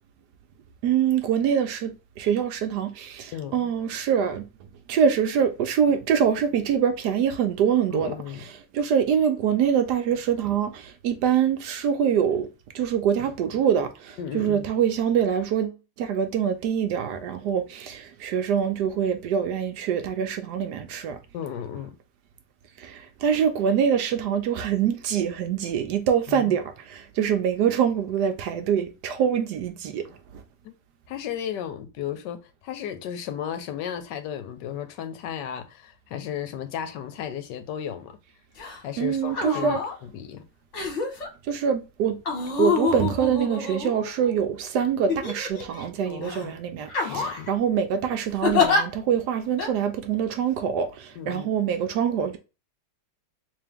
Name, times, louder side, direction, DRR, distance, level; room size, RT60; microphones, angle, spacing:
voice 1, 0.8-4.4 4.9-8.1 8.7-12.5 12.7-21.2 22.8-30.1 39.0-39.8 41.5-42.2 42.6-52.4, right 8 dB, 70° right, 1.1 m, -24 dB
voice 2, 3.3-3.7 7.9-8.4 14.2-14.7 21.3-22.0 26.3-26.5 30.6-30.7 31.1-38.2 38.8-40.4 46.1-46.6 47.1-47.5 51.2-51.5, left 9 dB, 75° left, 1.2 m, -34 dB
sound 1, 38.6-38.8 39.3-39.9 40.7-41.3 42.3-44.3 45.1-45.8 46.2-46.4 46.9-47.5 48.4-48.8 49.6-49.7, left 5 dB, 45° left, 1.2 m, -26 dB
3.5 x 2.9 x 3.4 m
omnidirectional pair, 2.0 m